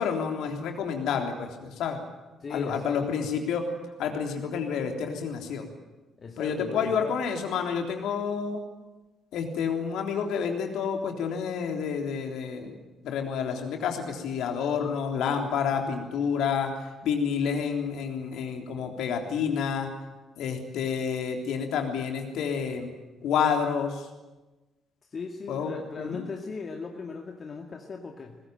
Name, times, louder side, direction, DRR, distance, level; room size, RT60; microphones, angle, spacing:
voice 1, 0.0-2.0 2.5-3.6 4.0-5.6 6.4-8.6 9.3-12.7 13.0-19.9 20.4-22.9 23.2-24.1 25.5-26.2, left 6 dB, 60° left, 3 dB, 3.5 m, -29 dB
voice 2, 2.4-3.3 6.2-7.2 25.1-28.4, left 4 dB, 40° left, 3 dB, 2.1 m, -38 dB
23.0 x 20.5 x 9.2 m, 1.2 s
figure-of-eight pair, 45°, 0 cm